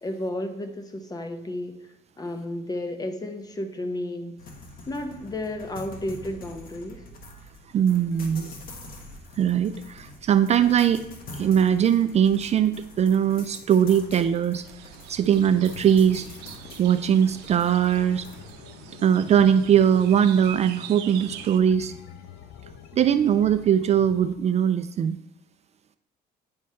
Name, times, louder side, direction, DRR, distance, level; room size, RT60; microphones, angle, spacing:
voice 1, 0.0-1.7 2.2-4.4 4.9-7.0, left 1 dB, 20° left, 7 dB, 0.9 m, -32 dB
sound 1, 4.4-18.5, left 2 dB, 60° left, 1.4 m, -45 dB
voice 2, 7.7-8.5 9.4-11.0 11.3-14.6 15.1-16.3 16.8-18.3 19.0-21.9 22.9-25.2, right 9 dB, 40° right, 11 dB, 0.4 m, -21 dB
sound 2, 14.6-21.6, right 11 dB, 90° right, 0.6 m, -44 dB
sound 3, 15.3-24.4, left 7 dB, 80° left, 0.7 m, -46 dB
9.6 x 3.2 x 5.5 m, 0.89 s
cardioid pair, 110°, 17 cm